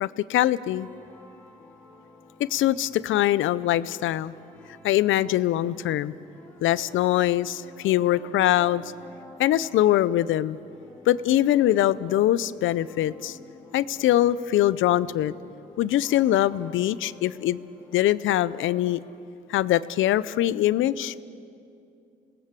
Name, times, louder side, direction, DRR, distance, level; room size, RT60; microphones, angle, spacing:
voice 1, 0.0-0.9 2.4-4.3 4.8-6.1 6.6-8.8 9.4-10.6 11.1-13.4 13.7-15.3 15.8-17.6 17.9-19.0 19.5-21.2, left 13 dB, 80° left, 18 dB, 0.6 m, -23 dB
sound 1, 0.7-19.2, left 2 dB, 10° left, 2.6 m, -51 dB
27.0 x 19.0 x 7.5 m, 2.6 s
cardioid pair, 90°, 20 cm